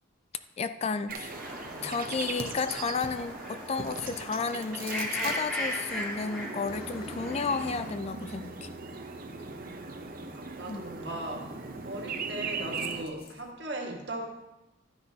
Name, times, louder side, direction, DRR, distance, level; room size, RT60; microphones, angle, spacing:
voice 1, 0.6-1.4 1.8-8.7 10.6-10.8, left 5 dB, 35° left, 11 dB, 0.3 m, -32 dB
sound 1, 1.1-13.0, right 4 dB, 45° right, 0.7 m, -39 dB
sound 2, 1.3-7.9, left 1 dB, 5° left, 3.2 m, -38 dB
Aircraft, 6.7-13.5, left 2 dB, 50° left, 0.8 m, -51 dB
voice 2, 10.1-11.5 11.8-14.3, right 1 dB, 60° right, 1 dB, 1.7 m, -38 dB
12.0 x 9.8 x 2.8 m, 1.0 s
head